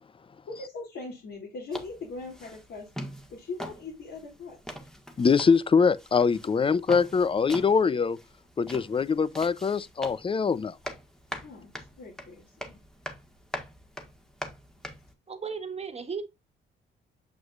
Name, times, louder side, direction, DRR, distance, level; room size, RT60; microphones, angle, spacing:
voice 1, 0.5-2.9 3.3-4.6 11.4-12.8, left 3 dB, 65° left, 2.9 m, -40 dB
sound 1, 1.7-15.1, equal, 5° left, 1.6 m, -43 dB
voice 2, 5.2-8.2 8.6-10.8, left 5 dB, 25° left, 0.6 m, -23 dB
voice 3, 15.3-16.2, right 5 dB, 30° right, 1.6 m, -35 dB
7.3 x 6.3 x 2.5 m
cardioid pair, 90°, 20 cm